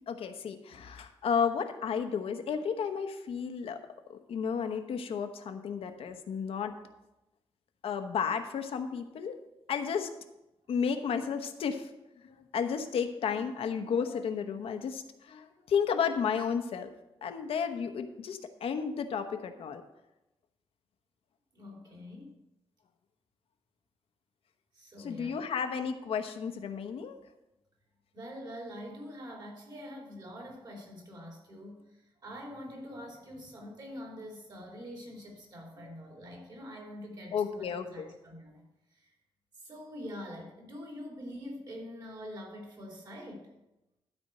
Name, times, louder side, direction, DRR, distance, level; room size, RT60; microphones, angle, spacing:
voice 1, 0.1-3.8 4.1-6.7 7.8-9.4 9.7-10.1 10.7-11.9 12.2-16.9 17.2-19.8 25.0-27.2 35.8-35.9 37.3-38.1, left 6 dB, 85° left, 7 dB, 0.9 m, -32 dB
voice 2, 21.5-22.3 24.7-25.4 28.1-39.1 39.6-43.5, equal, 45° right, 0 dB, 3.1 m, -45 dB
12.5 x 4.4 x 7.7 m, 0.94 s
wide cardioid pair, 150°, 9 cm